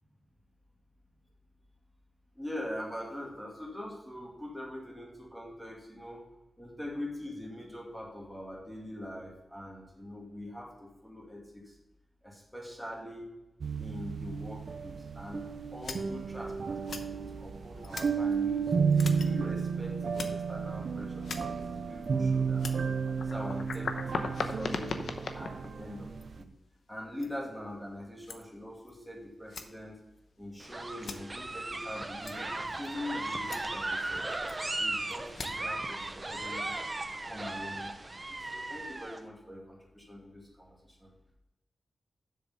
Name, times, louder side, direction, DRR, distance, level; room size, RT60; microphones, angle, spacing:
voice 1, 2.4-6.3 6.6-11.8 12.2-13.3 13.8-18.7 19.2-22.9 23.2-25.0 25.4-26.5 26.9-30.0 30.4-34.3 34.8-36.7 37.2-41.1, left 1 dB, 5° left, -2 dB, 2.3 m, -43 dB
sound 1, 13.6-26.4, right 5 dB, 60° right, 0.5 m, -32 dB
sound 2, 15.8-16.0 16.8-17.0 17.8-18.1 18.9-19.3 19.6-19.7 20.1-20.3 21.2-21.4 22.0-22.1 22.6-26.4 27.2-27.3 28.2-28.4 28.9-29.0 29.5-29.6 31.0-31.2 32.2-32.3 32.8-32.9 33.4-33.6 34.5-34.7 35.1-35.5, left 4 dB, 80° left, 0.9 m, -38 dB
sound 3, 30.6-39.2, right 2 dB, 25° right, 0.7 m, -36 dB
7.6 x 6.9 x 5.6 m, 1.0 s
wide cardioid pair, 175°, 0 cm